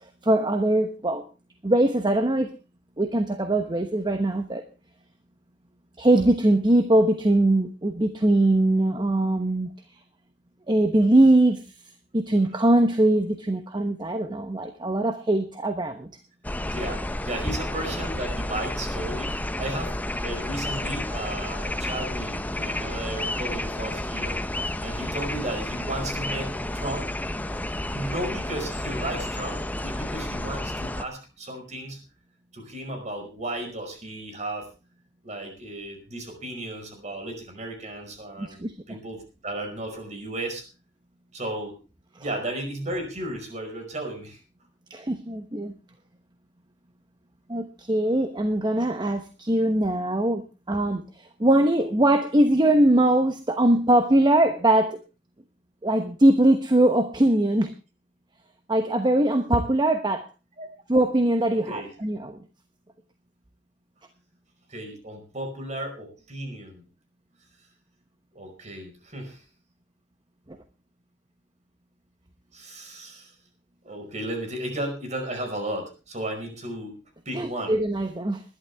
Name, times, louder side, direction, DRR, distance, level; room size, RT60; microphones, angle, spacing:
voice 1, 0.2-1.2 1.6-2.5 3.0-4.6 6.0-9.7 10.7-11.6 12.1-16.1 38.4-38.7 44.9-45.7 47.5-55.0 55.8-57.7 58.7-60.3 60.9-62.4 77.3-78.4, right 1 dB, 25° right, 8 dB, 1.0 m, -21 dB
sound 1, 16.4-31.0, left 1 dB, 10° left, 0.7 m, -31 dB
voice 2, 16.6-19.9 20.2-24.4 24.8-27.1 27.9-32.0 32.5-34.7 35.2-40.6 41.3-41.8 42.2-44.4 60.6-60.7 61.5-61.9 64.7-66.8 68.3-69.4 72.5-73.3 73.8-76.9 77.2-77.8, right 1 dB, 40° right, 4 dB, 5.1 m, -34 dB
20.5 x 11.5 x 3.5 m, 0.31 s
head